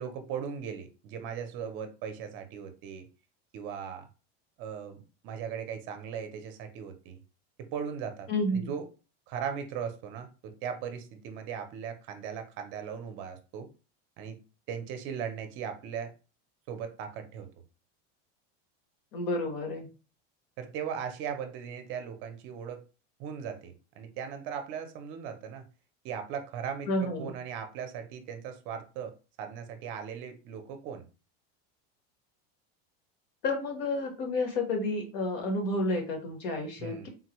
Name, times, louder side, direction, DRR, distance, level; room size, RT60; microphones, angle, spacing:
voice 1, 0.0-3.1 3.5-4.1 4.6-7.2 7.6-8.9 9.3-13.7 14.2-14.4 14.7-16.1 16.7-17.5 20.6-22.8 23.2-25.6 26.0-31.0 36.8-37.1, right 7 dB, 40° right, 0.6 m, -38 dB
voice 2, 8.3-8.7 19.1-19.9 26.9-27.3 33.4-37.1, left 2 dB, 65° left, 1.2 m, -30 dB
3.7 x 2.2 x 2.9 m
cardioid pair, 165°, 30 cm